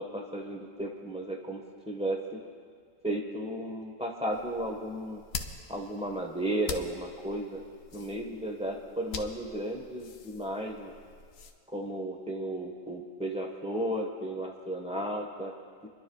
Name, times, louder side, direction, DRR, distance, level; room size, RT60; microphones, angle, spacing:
voice 1, 0.0-2.4 3.0-5.2 5.7-7.6 7.9-10.9 11.7-15.5, right 1 dB, 5° right, 0 dB, 1.2 m, -34 dB
sound 1, 4.3-11.5, left 5 dB, 85° left, 1.2 m, -44 dB
30.0 x 11.5 x 2.3 m, 2.1 s
omnidirectional pair, 1.3 m